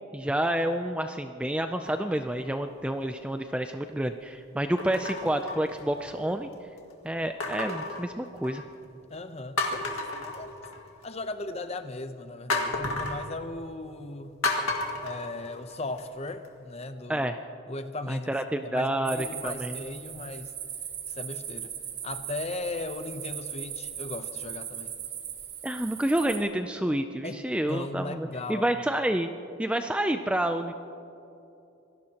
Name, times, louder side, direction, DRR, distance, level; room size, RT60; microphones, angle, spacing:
voice 1, 0.1-6.5 7.0-8.6 17.1-17.4 18.1-19.8 25.6-29.3 29.6-30.7, right 1 dB, 5° right, 6 dB, 0.3 m, -29 dB
sound 1, 1.8-2.3 3.0-3.1 4.8-6.2 7.4-8.8 9.2-9.3 9.6-11.0 12.5-13.2 14.4-16.0 16.4-16.5, left 2 dB, 80° left, 1.9 m, -32 dB
voice 2, 9.1-10.6 11.0-14.4 15.0-17.3 17.7-18.3 18.6-20.5 21.1-21.7 22.0-24.9 27.2-27.4 27.7-28.7, left 2 dB, 30° left, 9 dB, 0.7 m, -37 dB
sound 2, 19.1-26.4, right 9 dB, 50° right, 1.6 m, -38 dB
26.0 x 18.0 x 2.9 m, 2.8 s
head